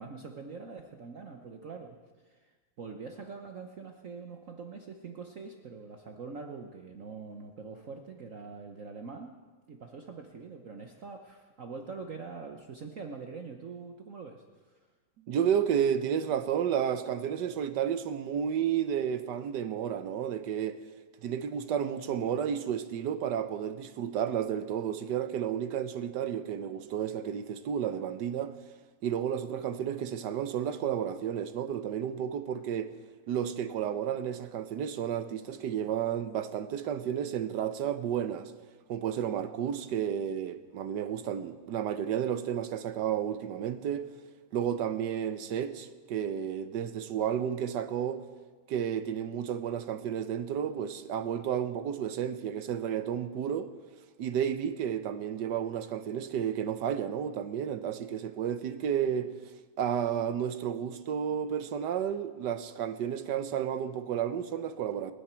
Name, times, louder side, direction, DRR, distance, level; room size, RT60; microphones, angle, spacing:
voice 1, 0.0-2.0 2.2-9.3 9.7-14.8, right 4 dB, 50° right, 1.2 m, -44 dB
voice 2, 15.3-20.8 21.2-28.5 29.0-32.9 33.3-38.5 38.9-44.1 44.5-48.2 48.7-53.7 54.2-59.3 59.8-65.1, right 9 dB, 65° right, 1.4 m, -32 dB
29.0 x 10.0 x 4.5 m
omnidirectional pair, 2.0 m